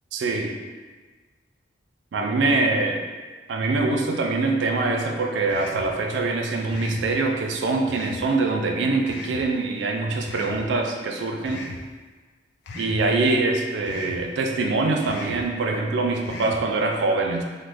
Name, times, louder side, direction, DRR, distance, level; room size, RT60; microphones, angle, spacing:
voice 1, 0.1-0.5 2.1-3.0 3.5-11.7 12.7-17.4, right 3 dB, 70° right, 3 dB, 0.3 m, -24 dB
sound 1, 5.5-5.9 6.7-7.1 7.9-8.2 9.1-9.4 10.2-10.6 11.5-11.8 12.7-13.0 13.9-14.2 15.0-15.4 16.2-16.6, left 3 dB, 60° left, 0.3 m, -37 dB
3.0 x 2.0 x 3.3 m, 1.4 s
head